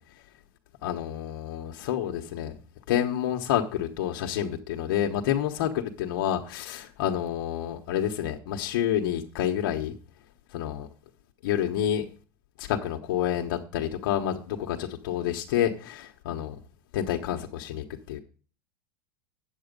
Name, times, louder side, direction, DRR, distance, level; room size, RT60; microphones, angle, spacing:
voice 1, 0.8-2.5 2.9-9.9 10.5-10.9 11.4-12.0 12.6-16.5 16.9-18.2, left 10 dB, 65° left, 1.1 m, -28 dB
9.4 x 8.0 x 5.2 m
supercardioid pair, 150°, 12 cm